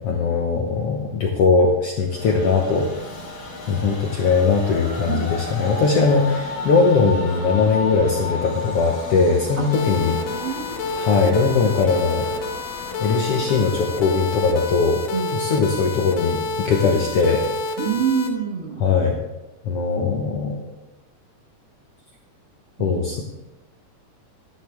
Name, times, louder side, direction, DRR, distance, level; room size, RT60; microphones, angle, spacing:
voice 1, 0.0-2.9 3.7-10.2 11.0-12.3 13.0-15.0 15.3-17.4 18.8-19.2 19.6-20.6 22.8-23.2, left 4 dB, 65° left, 0 dB, 1.5 m, -20 dB
Train, 2.1-15.6, left 2 dB, 40° left, 2.4 m, -34 dB
sound 1, 9.7-18.3, left 3 dB, 85° left, 2.8 m, -29 dB
voice 2, 10.3-10.9 15.1-15.5 17.8-18.8 22.8-23.2, right 7 dB, 55° right, 0 dB, 1.7 m, -27 dB
13.0 x 10.5 x 3.5 m, 1.0 s
omnidirectional pair, 3.9 m